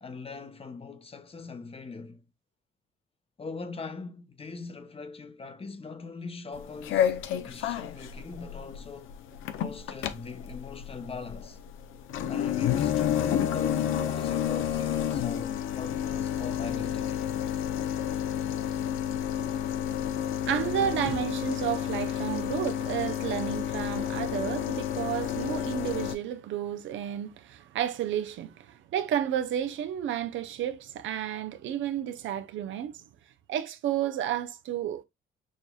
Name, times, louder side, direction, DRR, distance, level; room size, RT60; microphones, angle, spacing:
voice 1, 0.0-2.2 3.4-9.1 9.6-11.6 12.3-17.2, left 4 dB, 30° left, 0.8 m, -41 dB
sound 1, 6.6-26.2, left 10 dB, 90° left, 0.6 m, -30 dB
voice 2, 20.3-33.0 33.5-35.0, right 10 dB, 75° right, 0.6 m, -31 dB
6.3 x 2.7 x 2.2 m
cardioid pair, 90°, 20 cm